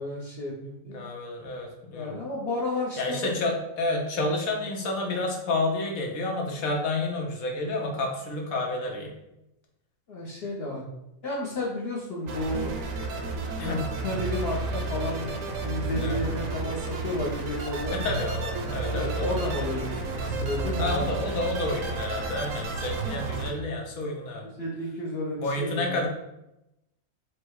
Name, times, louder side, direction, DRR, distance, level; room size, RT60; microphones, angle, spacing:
voice 1, 0.0-1.0 1.9-3.4 10.1-10.9 11.2-12.7 13.6-18.0 18.9-21.1 24.4-26.1, left 1 dB, 55° left, -4 dB, 0.9 m, -32 dB
voice 2, 0.9-2.2 3.0-9.1 13.6-13.8 16.0-16.2 17.9-19.4 20.1-20.4 20.8-24.4 25.4-26.1, left 2 dB, 85° left, 0 dB, 1.3 m, -30 dB
sound 1, 12.3-23.5, right 3 dB, 75° right, 1.0 m, -31 dB
4.6 x 2.1 x 4.6 m, 0.89 s
omnidirectional pair, 1.5 m